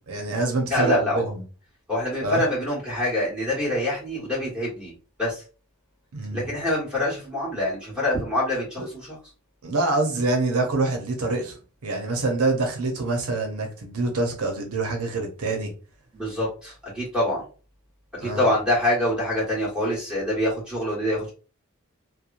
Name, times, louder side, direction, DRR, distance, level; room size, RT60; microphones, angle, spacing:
voice 1, 0.1-1.4 2.2-2.4 6.1-6.5 8.8-8.9 9.6-11.6 11.8-15.7 18.2-18.5, right 3 dB, 90° right, 0.7 m, -25 dB
voice 2, 0.7-1.3 1.9-4.9 5.2-5.4 6.3-9.2 16.1-17.4 18.2-21.3, left 1 dB, 5° right, 1.4 m, -25 dB
2.9 x 2.2 x 2.4 m
head